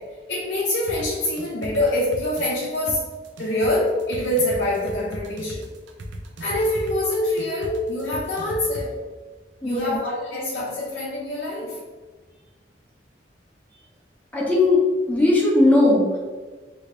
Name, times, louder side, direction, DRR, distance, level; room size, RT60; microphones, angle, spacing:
voice 1, 0.0-3.0 3.4-5.6 6.4-9.0 9.6-11.8, left 1 dB, 60° left, -6 dB, 0.6 m, -25 dB
sound 1, 0.9-8.8, right 1 dB, 75° right, 0.5 m, -36 dB
voice 2, 9.6-10.0 14.3-16.2, left 2 dB, 10° left, -5 dB, 0.7 m, -18 dB
3.0 x 2.7 x 3.0 m, 1.4 s
head